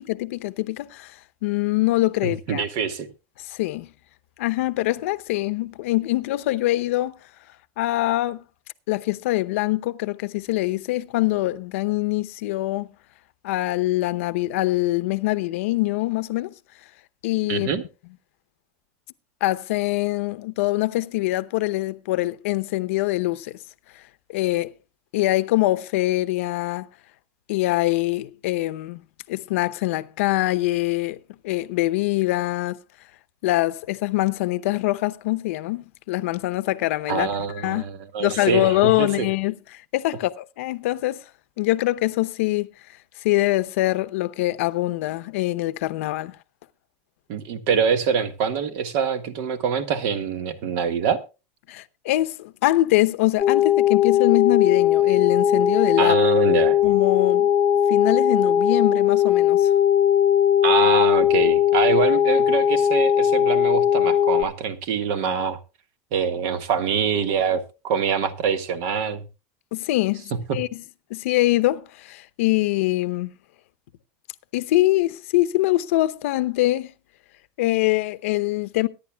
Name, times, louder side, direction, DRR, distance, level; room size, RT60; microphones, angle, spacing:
voice 1, 0.0-2.6 3.5-3.9 4.4-7.2 7.8-8.4 8.9-12.9 13.4-16.5 17.2-17.7 19.4-23.6 24.3-24.7 25.1-26.9 27.5-29.0 29.3-31.2 31.4-32.8 33.4-37.3 37.6-37.9 38.2-41.2 41.6-42.7 43.2-46.4 51.7-56.2 56.8-57.5 57.9-59.7 69.7-70.8 71.1-73.3 74.5-76.9 77.6-78.9, left 17 dB, 75° left, 0.8 m, -24 dB
voice 2, 2.2-3.1 17.5-17.8 37.1-39.3 47.3-51.2 56.0-56.8 60.6-65.6 66.1-69.2 70.3-70.6, right 6 dB, 55° right, 1.6 m, -24 dB
sound 1, 53.4-64.4, left 10 dB, 20° left, 1.0 m, -19 dB
22.5 x 10.5 x 2.3 m
supercardioid pair, 150°, 7 cm